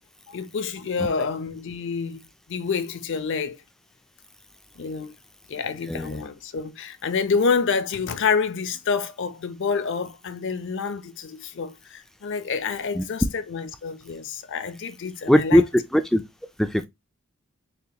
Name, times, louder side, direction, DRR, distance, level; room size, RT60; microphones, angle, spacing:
voice 1, 0.3-2.2 2.5-3.6 4.8-5.1 5.5-15.6, left 5 dB, 60° left, 0.6 m, -28 dB
voice 2, 15.3-15.6 15.9-16.2 16.6-16.9, equal, ahead, 0.3 m, -19 dB
6.6 x 2.9 x 2.2 m
head